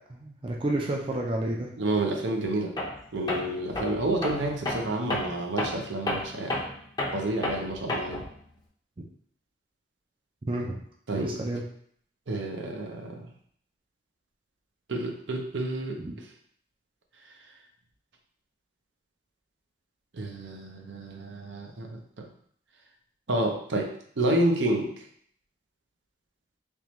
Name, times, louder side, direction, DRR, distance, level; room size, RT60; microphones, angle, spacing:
voice 1, 0.1-1.7 10.5-10.8 11.1-11.6 16.0-16.1, right 1 dB, 30° right, -1 dB, 0.4 m, -30 dB
voice 2, 1.8-2.8 3.1-6.6 7.1-8.3 11.1-11.4 12.3-13.3 14.9-16.3 20.1-22.3 23.3-24.9, right 1 dB, 75° right, 2 dB, 0.6 m, -29 dB
Tools, 2.8-3.0 3.3-8.3, left 1 dB, 20° left, 0.6 m, -31 dB
3.6 x 2.9 x 3.0 m, 0.62 s
head